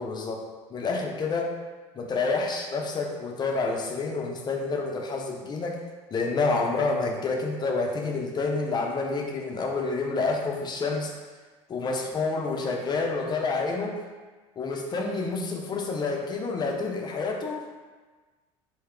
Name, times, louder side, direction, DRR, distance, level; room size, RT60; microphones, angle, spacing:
voice 1, 0.0-1.5 1.9-5.8 6.1-11.1 11.7-14.0 14.6-17.7, left 3 dB, 30° left, 1 dB, 0.6 m, -28 dB
3.6 x 2.7 x 3.3 m, 1.4 s
supercardioid pair, 100°, 14 cm